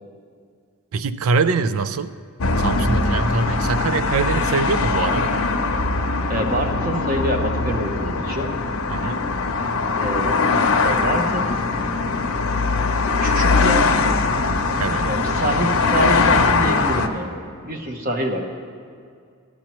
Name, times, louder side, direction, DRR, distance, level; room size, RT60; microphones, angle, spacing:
voice 1, 0.9-2.1 2.6-5.3 8.9-9.2 14.8-15.1, right 4 dB, 75° right, 12 dB, 0.4 m, -23 dB
sound 1, 2.4-17.1, left 3 dB, 75° left, 0.7 m, -21 dB
voice 2, 6.3-8.6 10.0-10.4 10.8-11.5 13.2-13.9 15.0-18.4, right 1 dB, 40° right, 3 dB, 0.9 m, -26 dB
14.0 x 12.0 x 3.0 m, 2.2 s
head